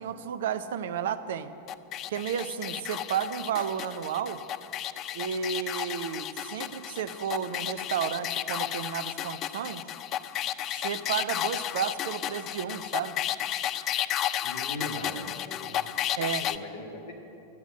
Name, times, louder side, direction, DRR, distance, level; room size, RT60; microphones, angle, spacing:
voice 1, 0.0-1.5 2.1-4.4 5.1-9.9 10.7-13.2 16.2-16.5, right 8 dB, 60° right, 12 dB, 0.6 m, -32 dB
sound 1, 1.7-16.6, left 11 dB, 35° left, 0.4 m, -33 dB
voice 2, 14.4-15.8 16.4-17.1, left 1 dB, 50° left, 1 dB, 2.0 m, -39 dB
12.0 x 9.1 x 7.7 m, 2.9 s
figure-of-eight pair, 90°, 0 cm